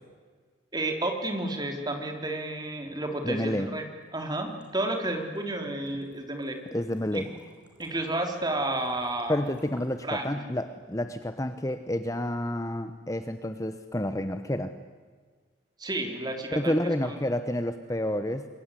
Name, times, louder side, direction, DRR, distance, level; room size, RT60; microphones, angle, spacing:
voice 1, 0.7-3.9 4.1-6.6 7.1-7.2 7.8-9.4 10.0-10.3 15.8-16.8 17.0-17.2, right 2 dB, 20° right, 4 dB, 3.5 m, -31 dB
voice 2, 3.2-3.8 6.7-7.3 9.3-14.7 16.5-18.5, left 1 dB, 15° left, 9 dB, 1.0 m, -29 dB
sound 1, 4.0-10.1, right 1 dB, 5° right, 4.9 m, -54 dB
27.0 x 22.0 x 9.9 m, 1.5 s
head